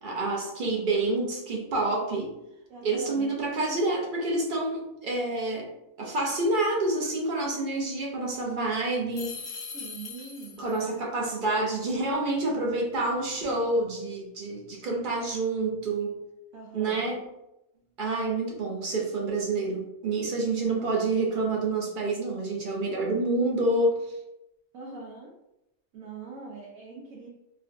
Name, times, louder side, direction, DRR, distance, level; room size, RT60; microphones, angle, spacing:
voice 1, 0.0-2.3 2.8-5.7 6.0-9.4 10.6-16.2 16.7-17.2 18.0-24.1, right 2 dB, 55° right, -2 dB, 0.6 m, -28 dB
voice 2, 2.7-3.3 9.7-10.6 16.5-17.2 24.7-25.3 25.9-27.3, right 4 dB, 85° right, -3 dB, 1.0 m, -42 dB
sound 1, 9.1-10.8, left 5 dB, 55° left, 0.9 m, -40 dB
3.7 x 2.1 x 2.5 m, 0.90 s
omnidirectional pair, 1.4 m